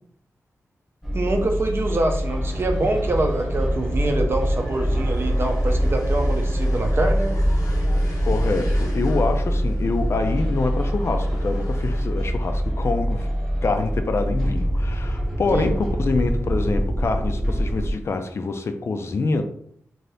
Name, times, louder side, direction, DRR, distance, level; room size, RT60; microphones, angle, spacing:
sound 1, 1.0-17.9, equal, ahead, 1.0 m, -24 dB
voice 1, 1.1-7.4 15.5-15.7, right 2 dB, 45° right, 4 dB, 0.5 m, -25 dB
sound 2, 3.7-12.0, equal, 80° left, 0.8 m, -39 dB
voice 2, 8.2-13.3 13.6-19.4, left 3 dB, 50° left, 6 dB, 0.4 m, -25 dB
2.7 x 2.6 x 3.3 m, 0.66 s
wide cardioid pair, 115°, 6 cm